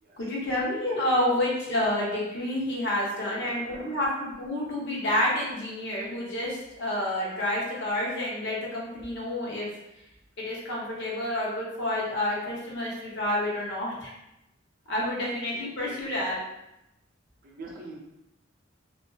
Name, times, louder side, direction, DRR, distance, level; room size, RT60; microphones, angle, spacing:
voice 1, 0.2-9.7 10.4-14.1 14.9-16.4, left 1 dB, 60° left, -5 dB, 0.7 m, -29 dB
voice 2, 3.2-4.0 15.5-15.9 17.4-17.9, right 2 dB, 50° right, -2 dB, 0.5 m, -45 dB
2.4 x 2.2 x 2.3 m, 0.89 s
head